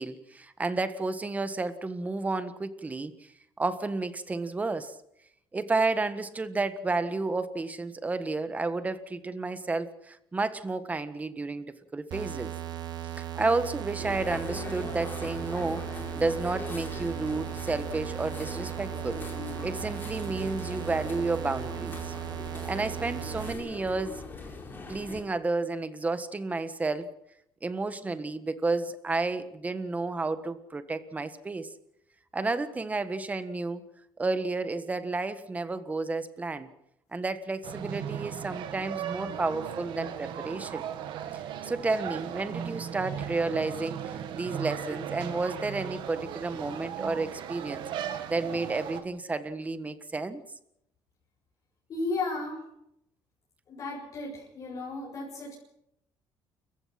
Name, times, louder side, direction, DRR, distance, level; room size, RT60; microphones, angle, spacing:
voice 1, 0.0-3.1 3.6-4.9 5.5-12.5 13.1-15.9 16.2-19.2 19.6-22.1 22.7-24.2 24.9-27.1 27.6-31.7 32.3-33.8 34.2-36.7 37.1-40.8 41.3-47.8 48.3-50.4, right 3 dB, 15° right, 11 dB, 1.5 m, -31 dB
sound 1, 12.1-23.5, right 12 dB, 55° right, 1.6 m, -37 dB
sound 2, 14.0-25.2, left 3 dB, 25° left, 4.5 m, -41 dB
sound 3, 37.6-49.0, right 9 dB, 70° right, 2.1 m, -37 dB
voice 2, 51.9-52.7 53.7-55.5, left 3 dB, 45° left, -5 dB, 7.8 m, -34 dB
29.5 x 15.5 x 5.9 m, 0.78 s
cardioid pair, 130°, 9 cm